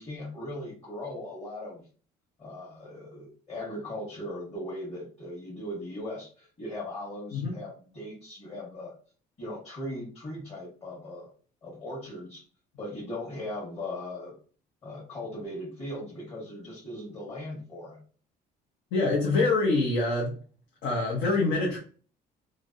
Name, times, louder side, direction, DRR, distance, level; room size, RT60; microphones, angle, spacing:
voice 1, 0.0-1.9 2.4-8.9 9.4-11.3 11.6-12.4 12.8-14.3 14.8-18.0, left 1 dB, 35° left, -6 dB, 1.5 m, -38 dB
voice 2, 18.9-20.3 20.8-21.8, left 3 dB, 80° left, -2 dB, 0.9 m, -25 dB
3.2 x 2.5 x 2.6 m, 0.41 s
cardioid pair, 110°, 17 cm